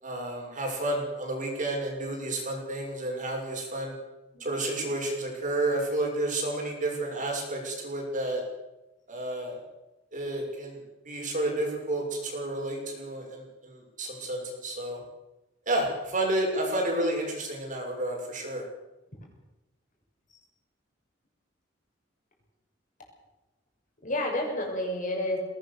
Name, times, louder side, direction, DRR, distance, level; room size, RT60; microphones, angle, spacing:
voice 1, 0.0-3.9 4.4-8.4 9.1-9.6 10.1-15.0 15.7-18.6, right 1 dB, 45° right, 1 dB, 6.5 m, -31 dB
voice 2, 4.3-4.9 20.3-20.4 24.0-25.4, left 1 dB, 45° left, 0 dB, 6.7 m, -31 dB
21.0 x 18.5 x 7.1 m, 1.0 s
head